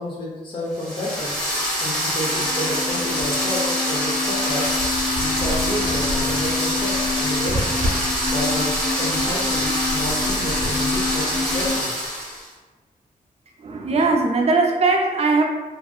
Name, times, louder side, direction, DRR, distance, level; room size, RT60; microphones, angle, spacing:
voice 1, 0.0-1.4 1.8-4.7 5.2-7.7 8.2-11.9, equal, 35° left, -6 dB, 0.7 m, -30 dB
sound 1, 0.7-12.4, equal, 5° left, 1.0 m, -25 dB
sound 2, 2.2-11.8, left 4 dB, 90° left, 0.7 m, -29 dB
sound 3, 4.7-11.7, equal, 70° right, 0.8 m, -31 dB
voice 2, 13.6-15.4, right 3 dB, 45° right, 1 dB, 0.4 m, -19 dB
2.8 x 2.6 x 2.3 m, 1.3 s
wide cardioid pair, 145°, 15 cm